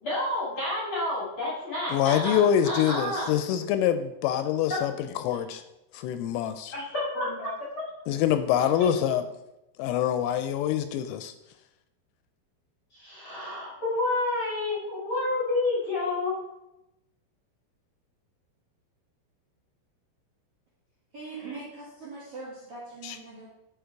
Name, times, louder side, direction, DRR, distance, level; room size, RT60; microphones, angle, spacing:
voice 1, 0.0-3.3 4.7-4.8 5.2-5.4 6.7-7.8 8.8-8.9 12.9-16.3 21.3-21.6, left 2 dB, 50° left, -7 dB, 1.5 m, -30 dB
voice 2, 1.9-5.6 5.9-6.7 8.1-9.2 9.8-11.3 23.0-23.2, left 10 dB, 85° left, 10 dB, 3.0 m, -25 dB
voice 3, 21.1-23.5, right 3 dB, 65° right, -4 dB, 1.9 m, -41 dB
10.5 x 5.2 x 4.6 m, 0.91 s
omnidirectional pair, 5.9 m